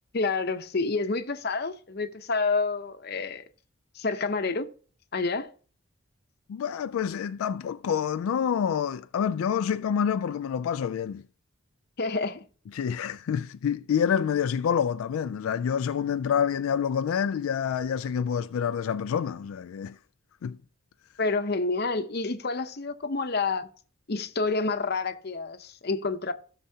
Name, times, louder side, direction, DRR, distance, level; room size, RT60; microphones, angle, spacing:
voice 1, 0.1-3.4 3.9-4.7 5.1-5.5 12.0-12.4 21.2-23.7 24.1-26.3, left 3 dB, 50° left, 0.8 m, -28 dB
voice 2, 6.5-11.2 12.7-20.0 20.4-20.6, left 7 dB, 85° left, 0.3 m, -27 dB
16.5 x 6.7 x 2.8 m
head